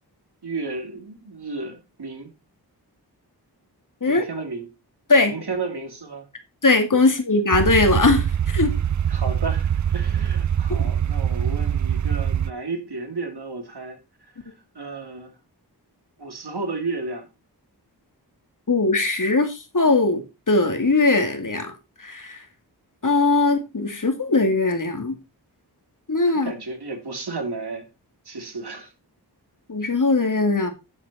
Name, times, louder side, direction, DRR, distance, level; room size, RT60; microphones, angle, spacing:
voice 1, 0.4-2.3 4.0-4.7 5.2-6.3 9.1-14.0 14.4-15.4 16.2-17.3 26.3-27.9 28.2-28.9, right 3 dB, 70° right, 2.8 m, -33 dB
voice 2, 6.6-8.7 18.7-20.2 20.5-21.7 22.0-22.4 23.0-25.2 26.1-26.5 29.7-30.7, left 3 dB, 50° left, 2.4 m, -20 dB
sound 1, 7.5-12.5, right 9 dB, 45° right, 0.5 m, -23 dB
10.5 x 7.8 x 4.2 m
wide cardioid pair, 80°, 40 cm